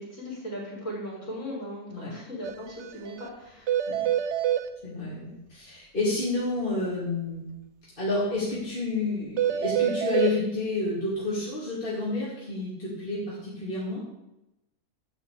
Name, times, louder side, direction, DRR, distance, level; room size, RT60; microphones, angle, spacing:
voice 1, 0.0-3.7, equal, 55° left, -4 dB, 4.7 m, -38 dB
sound 1, 2.4-2.5 2.8-2.9 3.2-3.3 3.7-4.6 9.4-10.3, right 10 dB, 55° right, 0.9 m, -26 dB
voice 2, 4.8-7.4 8.0-14.0, left 2 dB, 35° left, -7 dB, 2.9 m, -30 dB
11.5 x 5.9 x 8.4 m, 0.92 s
omnidirectional pair, 1.6 m